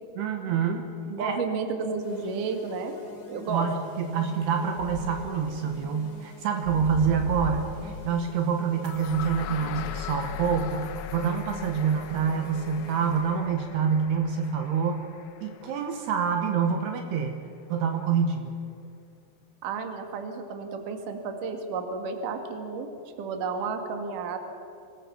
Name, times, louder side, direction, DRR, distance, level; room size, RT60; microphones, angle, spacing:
voice 1, 0.2-0.9 1.2-1.4 3.5-15.0 15.4-17.3 17.7-18.5, right 6 dB, 70° right, 4 dB, 3.3 m, -27 dB
voice 2, 1.1-3.0 3.3-3.7 19.6-22.9 23.2-24.4, right 4 dB, 55° right, 5 dB, 3.0 m, -32 dB
sound 1, 2.0-13.6, left 2 dB, 45° left, 3.5 m, -47 dB
sound 2, 4.4-5.1 5.5-5.6 6.2-6.3 6.6-7.8, equal, 90° right, 9.0 m, -34 dB
sound 3, 8.8-16.8, left 10 dB, 75° left, 2.7 m, -40 dB
26.0 x 19.5 x 7.1 m, 2.5 s
omnidirectional pair, 5.0 m